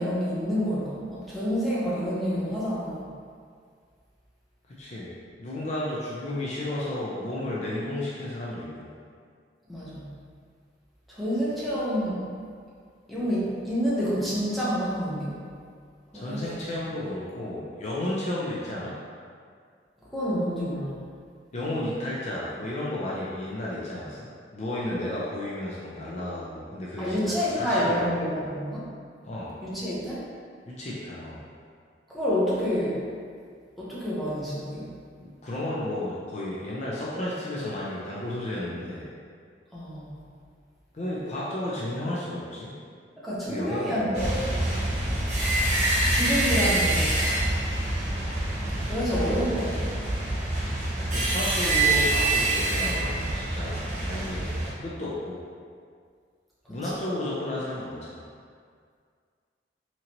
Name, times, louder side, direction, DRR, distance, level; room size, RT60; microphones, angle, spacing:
voice 1, 0.0-3.1 9.7-10.1 11.1-12.3 13.1-15.4 16.1-16.5 20.1-21.0 27.0-28.9 29.6-30.2 32.1-33.0 33.8-34.8 39.7-40.3 43.2-44.7 46.1-47.1 48.8-49.9 53.9-54.0, equal, ahead, -9 dB, 0.8 m, -28 dB
voice 2, 4.8-5.1 5.4-8.9 16.1-18.9 21.5-28.5 29.2-29.5 30.7-31.4 35.4-39.1 40.9-42.7 43.5-44.2 45.0-45.3 51.1-54.5 54.8-55.4 56.7-58.2, left 1 dB, 40° left, -7 dB, 0.5 m, -33 dB
sound 1, 44.1-54.7, right 2 dB, 45° right, 1.0 m, -26 dB
3.8 x 2.9 x 2.9 m, 2.1 s
head